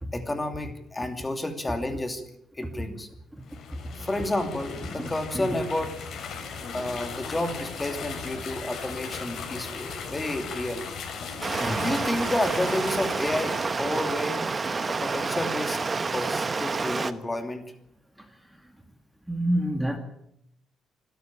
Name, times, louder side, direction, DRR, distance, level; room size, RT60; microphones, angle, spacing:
voice 1, 0.1-3.1 4.0-5.9 6.7-10.9 11.8-14.5 14.9-17.6, left 1 dB, 15° left, 6 dB, 2.8 m, -31 dB
sound 1, 3.4-14.2, left 5 dB, 65° left, 6.5 m, -37 dB
voice 2, 5.0-5.5 11.6-11.9 18.2-18.4 19.3-20.0, right 1 dB, 5° right, 5 dB, 2.3 m, -29 dB
Stream, 11.4-17.1, right 4 dB, 30° right, 1.2 m, -29 dB
26.0 x 13.0 x 8.7 m, 0.73 s
cardioid pair, 120°, 0 cm